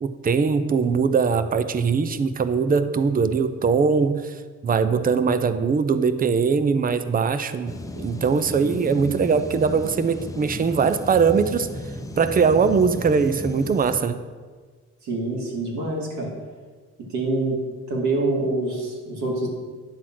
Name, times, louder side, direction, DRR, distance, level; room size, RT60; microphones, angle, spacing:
voice 1, 0.0-4.4 4.6-11.7 12.2-14.1, right 5 dB, 30° right, 11 dB, 0.6 m, -21 dB
sound 1, 7.7-14.0, left 1 dB, 10° left, 0.8 m, -35 dB
voice 2, 15.0-16.3 17.1-17.6 17.9-19.5, right 2 dB, 70° right, -3 dB, 2.7 m, -25 dB
10.0 x 4.0 x 7.6 m, 1.5 s
cardioid pair, 90°, 30 cm